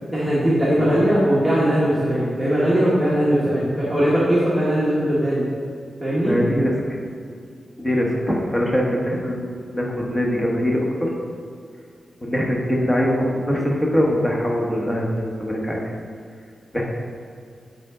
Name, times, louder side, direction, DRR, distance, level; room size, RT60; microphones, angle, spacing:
voice 1, 0.1-5.5 6.0-6.4, equal, ahead, -9 dB, 1.4 m, -19 dB
voice 2, 6.2-6.8 7.8-11.1 12.2-15.8 16.7-16.8, equal, 15° left, -2 dB, 1.2 m, -22 dB
8.4 x 5.1 x 3.7 m, 2.2 s
wide cardioid pair, 110°, 0 cm